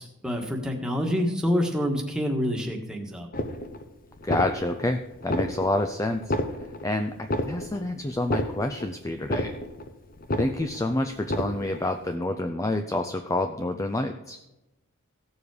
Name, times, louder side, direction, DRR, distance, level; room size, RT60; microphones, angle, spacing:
voice 1, 0.0-3.3, equal, 5° right, 1 dB, 1.5 m, -27 dB
sound 1, 3.3-3.9 4.2-4.9 5.2-5.9 6.2-6.9 7.2-7.9 8.2-8.9 9.2-9.9 10.2-10.9 11.2-11.9, left 1 dB, 40° left, 0.8 m, -30 dB
voice 2, 4.2-6.3 6.8-9.5 10.4-14.4, left 2 dB, 15° left, 7 dB, 0.4 m, -28 dB
16.0 x 7.2 x 4.9 m, 1.0 s
head